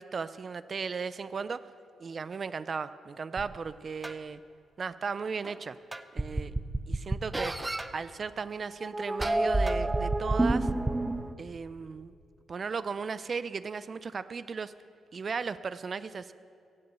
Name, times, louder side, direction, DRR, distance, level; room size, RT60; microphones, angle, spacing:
voice 1, 0.0-1.6 2.0-4.4 4.8-5.8 6.1-6.5 6.9-7.5 7.9-10.7 11.4-12.1 12.5-14.7 15.1-16.3, right 5 dB, 45° right, 14 dB, 0.4 m, -36 dB
sound 1, 3.4-3.5 4.0-4.1 5.4-5.5 5.9-7.9 8.7-11.3, right 2 dB, 15° right, 0.7 m, -29 dB
16.0 x 8.8 x 8.0 m, 2.4 s
cardioid pair, 75°, 0 cm